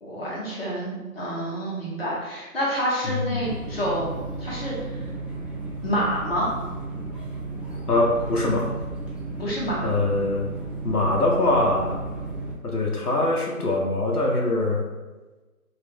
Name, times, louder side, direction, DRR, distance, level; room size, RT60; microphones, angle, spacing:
voice 1, 0.0-4.7 5.8-6.5 9.4-9.8, equal, 40° left, -6 dB, 0.8 m, -28 dB
voice 2, 3.0-3.5 7.9-8.7 9.8-10.4 10.8-12.0 12.6-14.8, left 2 dB, 85° left, -1 dB, 0.8 m, -23 dB
sound 1, 3.4-12.5, right 3 dB, 5° right, 0.3 m, -34 dB
2.3 x 2.0 x 3.4 m, 1.2 s
figure-of-eight pair, 160°, 45 cm